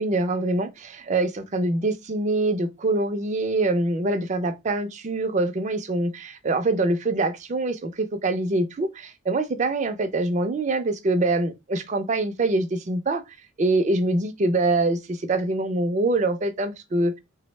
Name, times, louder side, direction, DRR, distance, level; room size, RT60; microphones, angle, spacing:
voice 1, 0.0-13.2 13.6-17.1, right 2 dB, 35° right, 0.4 m, -24 dB
3.3 x 2.0 x 3.1 m
head